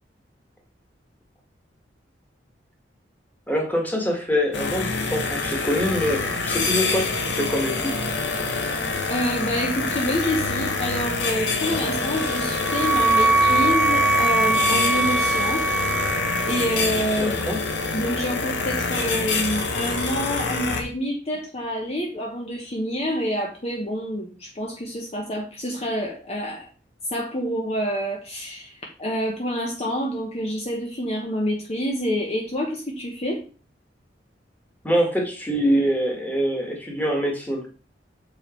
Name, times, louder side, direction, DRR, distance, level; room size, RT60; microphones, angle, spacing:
voice 1, 3.5-7.1 7.4-7.9 17.2-17.6 34.8-37.6, equal, 10° left, 1 dB, 1.8 m, -24 dB
sound 1, 4.5-20.8, left 3 dB, 75° left, 1.5 m, -26 dB
voice 2, 8.5-15.6 16.4-17.4 17.9-26.7 27.1-33.4, equal, 35° left, 1 dB, 1.1 m, -27 dB
Wind instrument woodwind instrument, 12.1-16.9, right 3 dB, 5° right, 0.4 m, -22 dB
7.0 x 4.9 x 4.5 m, 0.37 s
head